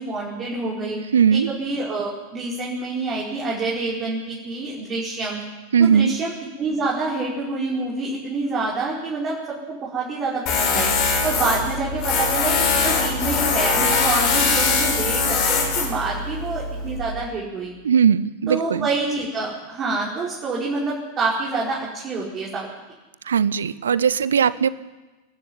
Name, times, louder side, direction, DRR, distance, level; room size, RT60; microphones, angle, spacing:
voice 1, 0.0-1.0 1.3-5.4 5.8-6.3 6.6-10.9 11.2-17.7 18.5-22.7, right 3 dB, 25° right, -5 dB, 5.1 m, -27 dB
voice 2, 1.1-1.5 5.7-6.1 17.8-18.9 23.3-24.7, right 7 dB, 65° right, 19 dB, 0.7 m, -18 dB
Tools, 10.5-17.0, left 4 dB, 40° left, 6.5 m, -22 dB
25.0 x 11.5 x 9.9 m, 1.2 s
figure-of-eight pair, 90°, 0 cm